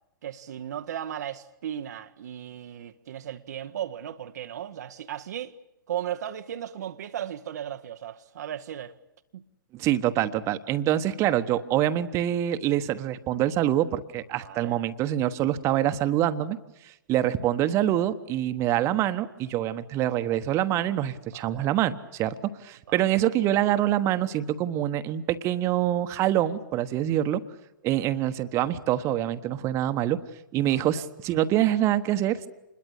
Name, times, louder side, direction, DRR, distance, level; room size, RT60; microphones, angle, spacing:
voice 1, 0.2-5.5 5.9-8.9 9.3-9.4 14.4-14.8 21.3-21.7 22.9-23.0 30.7-31.1, right 10 dB, 50° right, 0.9 m, -36 dB
voice 2, 9.7-16.6 16.8-27.4 27.8-30.2 30.5-32.5, right 12 dB, 25° right, 1.2 m, -25 dB
27.0 x 21.5 x 8.3 m
figure-of-eight pair, 115°, 12 cm